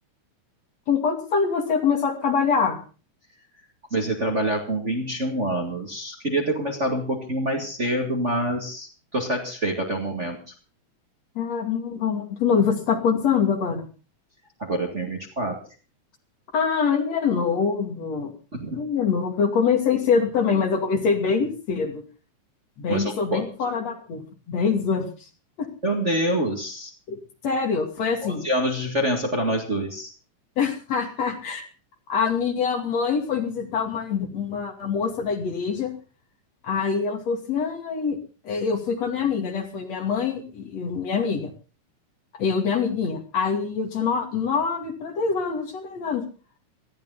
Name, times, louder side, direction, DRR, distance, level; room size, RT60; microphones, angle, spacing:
voice 1, 0.9-2.8 11.4-13.9 16.5-18.3 18.8-22.0 22.8-24.2 24.5-25.1 25.6-25.7 27.1-28.5 30.6-31.6 32.1-35.9 36.6-38.2 38.4-41.5 42.3-46.3, left 6 dB, 60° left, 3 dB, 3.6 m, -24 dB
voice 2, 3.9-10.4 14.6-15.6 18.5-18.8 22.9-23.4 25.8-26.9 28.2-30.1, right 1 dB, 25° right, 1 dB, 1.9 m, -26 dB
18.5 x 14.0 x 4.0 m, 0.36 s
omnidirectional pair, 3.4 m